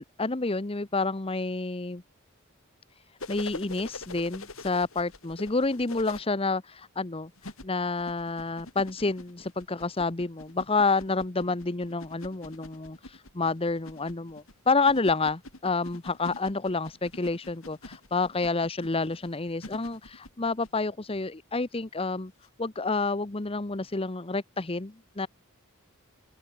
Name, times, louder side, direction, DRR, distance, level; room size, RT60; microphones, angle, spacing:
voice 1, 0.2-2.0 3.3-7.3 7.6-22.3 22.6-25.3, left 3 dB, 25° left, 0.9 m, -29 dB
sound 1, 3.2-6.2 7.4-20.7 22.4-22.5, left 2 dB, 65° left, 5.4 m, -45 dB
open air
head